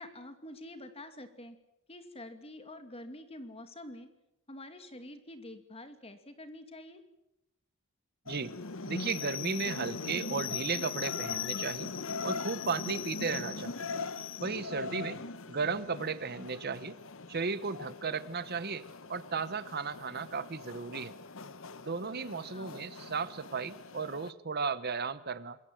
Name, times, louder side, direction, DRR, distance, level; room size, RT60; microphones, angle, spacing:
voice 1, 0.0-1.6 1.9-4.1 4.5-7.0 15.0-15.3 22.5-22.8, left 1 dB, 25° left, 8 dB, 2.6 m, -47 dB
sound 1, 8.3-24.3, left 5 dB, 60° left, 1.1 m, -40 dB
voice 2, 8.3-8.6 8.8-11.9 12.2-13.9 14.4-15.2 15.5-17.0 17.3-21.1 21.8-25.6, right 5 dB, 45° right, 15 dB, 0.9 m, -35 dB
27.0 x 22.5 x 7.6 m, 0.88 s
head